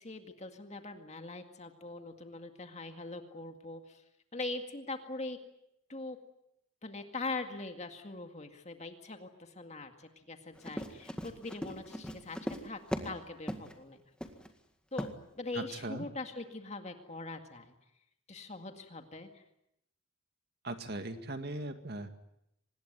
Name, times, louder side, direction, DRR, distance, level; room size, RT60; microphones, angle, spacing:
voice 1, 0.0-4.0 4.3-5.4 5.9-6.2 6.8-12.4 12.6-14.0 14.9-17.7 18.3-19.4, left 3 dB, 30° left, 6 dB, 2.1 m, -42 dB
Run, 10.6-13.2 13.5-13.7 14.2-14.5 15.0-15.1, equal, 5° left, 1.9 m, -38 dB
voice 2, 15.6-16.0 20.6-22.1, right 2 dB, 50° right, 8 dB, 2.1 m, -39 dB
25.5 x 20.0 x 9.4 m, 0.80 s
head